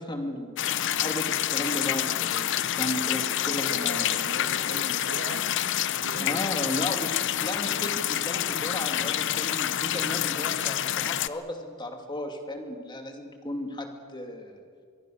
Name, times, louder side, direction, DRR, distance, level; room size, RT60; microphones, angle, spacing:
voice 1, 0.0-4.1 6.2-14.6, left 1 dB, 20° left, 4 dB, 2.6 m, -35 dB
sound 1, 0.6-11.3, left 11 dB, 60° left, 0.6 m, -28 dB
voice 2, 3.5-5.6 5.9-6.4 6.9-7.0, right 2 dB, 75° right, 4 dB, 1.9 m, -39 dB
25.0 x 22.0 x 6.5 m, 2.1 s
head